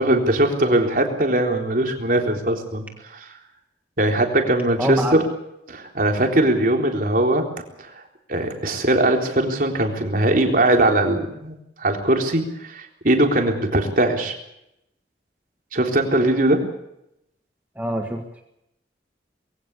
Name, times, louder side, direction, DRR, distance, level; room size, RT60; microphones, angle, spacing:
voice 1, 0.0-3.3 4.0-5.3 5.7-7.4 7.8-7.9 8.3-14.3 15.7-16.6, right 1 dB, 50° right, 2 dB, 3.8 m, -20 dB
voice 2, 4.8-5.2 17.8-18.4, right 1 dB, 10° right, 2 dB, 1.7 m, -25 dB
22.0 x 17.0 x 8.4 m, 0.82 s
head